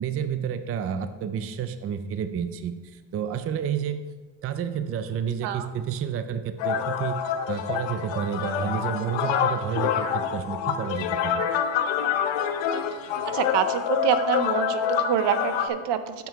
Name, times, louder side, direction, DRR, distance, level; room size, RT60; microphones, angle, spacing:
voice 1, 0.0-4.0 4.4-7.2 7.5-11.4, right 8 dB, 35° right, 10 dB, 0.4 m, -30 dB
sound 1, 6.6-15.7, left 8 dB, 85° left, 0.7 m, -27 dB
voice 2, 13.3-16.1, right 8 dB, 70° right, 11 dB, 0.7 m, -26 dB
7.1 x 6.1 x 4.6 m, 1.3 s
cardioid pair, 135°, 43 cm